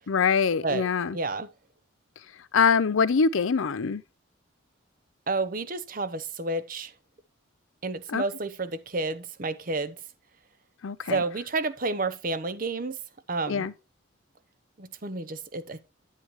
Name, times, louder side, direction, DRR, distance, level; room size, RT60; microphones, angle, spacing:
voice 1, 0.1-1.2 2.5-4.0 8.1-8.2 10.8-11.2 13.5-13.7, left 5 dB, 85° left, 0.5 m, -24 dB
voice 2, 1.1-1.5 5.3-6.9 7.8-10.0 11.1-13.0 13.3-13.7 14.8-15.8, right 3 dB, 45° right, 0.8 m, -30 dB
9.6 x 8.4 x 3.1 m
head